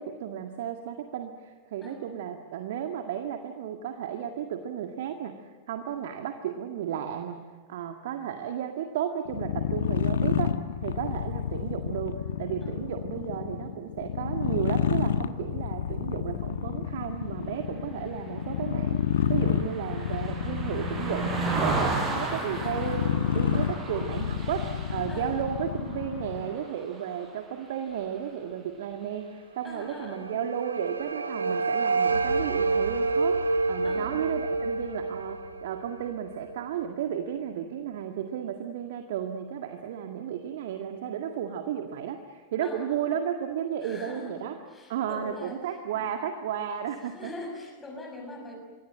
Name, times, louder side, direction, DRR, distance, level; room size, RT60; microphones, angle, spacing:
voice 1, 0.0-19.0 19.3-44.6 44.9-47.3, right 9 dB, 55° right, 6 dB, 1.9 m, -33 dB
sound 1, 9.3-26.5, left 8 dB, 60° left, 1.1 m, -30 dB
Car passing by, 18.0-27.6 27.9-28.2, right 3 dB, 25° right, 7.1 m, -34 dB
voice 2, 21.8-22.2 23.6-23.8 25.1-25.3 29.6-30.5 33.8-34.2 42.6-43.0 43.8-45.6 45.9-46.0 47.1-48.6, left 2 dB, 15° left, 2 dB, 6.1 m, -43 dB
sound 2, 29.8-36.9, right 3 dB, 75° right, 1.8 m, -28 dB
26.5 x 23.5 x 7.7 m, 1.4 s
figure-of-eight pair, 90°, 0 cm